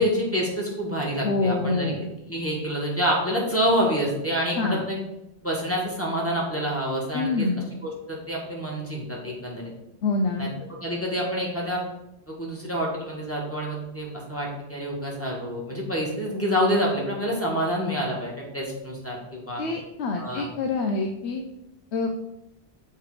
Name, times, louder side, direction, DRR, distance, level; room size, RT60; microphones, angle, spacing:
voice 1, 0.0-1.9 2.3-5.0 5.4-7.4 7.8-9.7 10.4-10.5 10.8-11.8 12.3-19.6 20.2-20.4, equal, 10° left, -4 dB, 1.5 m, -27 dB
voice 2, 1.2-2.1 4.6-4.8 7.1-7.7 10.0-10.5 19.6-21.4 21.9-22.2, left 3 dB, 85° left, 4 dB, 0.9 m, -26 dB
6.7 x 3.3 x 4.7 m, 0.88 s
omnidirectional pair, 1.1 m